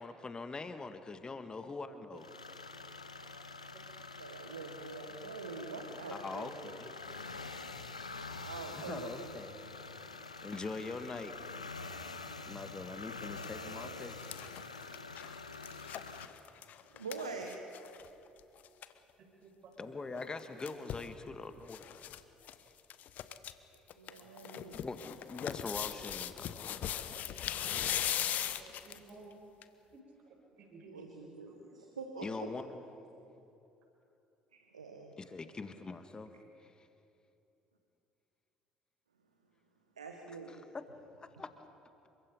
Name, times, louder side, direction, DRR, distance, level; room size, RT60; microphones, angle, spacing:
voice 1, 0.0-2.3 6.1-6.9 8.7-9.5 10.4-11.3 12.4-14.3 19.8-21.9 24.7-27.1 32.2-32.8 35.2-36.9 40.5-40.8 41.2-41.5, left 3 dB, 25° left, 9 dB, 1.8 m, -43 dB
sound 1, 2.2-16.2, left 3 dB, 85° left, 0.9 m, -46 dB
voice 2, 4.2-6.7 8.4-9.3 13.4-13.9 16.9-17.6 24.0-24.8 30.9-32.2 34.5-35.1 40.0-40.6, right 4 dB, 80° right, 3 dB, 1.6 m, -45 dB
sound 2, 13.2-13.4 13.8-18.1 18.4-18.5 18.6-18.9 20.2-21.1 21.7-22.2 22.4-22.5 22.9-23.5 23.9-29.1 29.6-29.7, left 11 dB, 50° left, 1.1 m, -39 dB
voice 3, 19.2-20.0 24.2-24.3 28.6-29.3 29.9-30.0 30.3-31.3, right 3 dB, 50° right, 0 dB, 6.6 m, -55 dB
29.0 x 24.5 x 5.5 m, 2.9 s
figure-of-eight pair, 55°, 3 cm